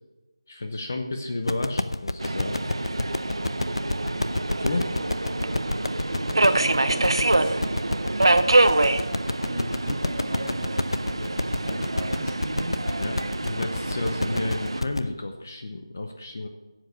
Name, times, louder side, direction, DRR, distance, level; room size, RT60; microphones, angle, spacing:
voice 1, 0.5-2.6 4.6-4.9 13.0-16.5, left 2 dB, 30° left, 4 dB, 0.7 m, -32 dB
sound 1, 1.5-15.1, left 2 dB, 85° left, 0.7 m, -29 dB
Subway metro underground, 2.2-14.8, right 2 dB, 70° right, 0.8 m, -26 dB
voice 2, 4.8-5.6 6.2-7.6 8.1-9.1 9.5-12.8 13.9-14.5, right 1 dB, 10° right, -3 dB, 1.2 m, -38 dB
11.0 x 7.7 x 6.5 m, 1.2 s
figure-of-eight pair, 180°, 3 cm